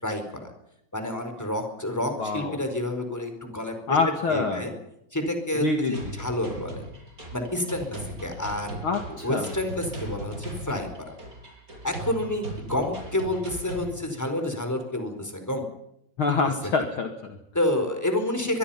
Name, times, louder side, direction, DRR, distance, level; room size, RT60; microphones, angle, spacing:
voice 1, 0.0-0.5 0.9-4.0 4.3-4.7 5.1-6.8 7.3-8.8 9.2-11.1 11.8-15.7 17.5-18.6, left 1 dB, 5° left, 6 dB, 4.5 m, -29 dB
voice 2, 2.2-2.6 3.9-4.6 5.6-5.9 8.8-9.5 16.2-17.4, left 4 dB, 45° left, 4 dB, 2.5 m, -26 dB
sound 1, 5.9-13.9, right 1 dB, 25° right, 6.8 m, -38 dB
24.0 x 23.0 x 5.9 m, 0.78 s
omnidirectional pair, 3.4 m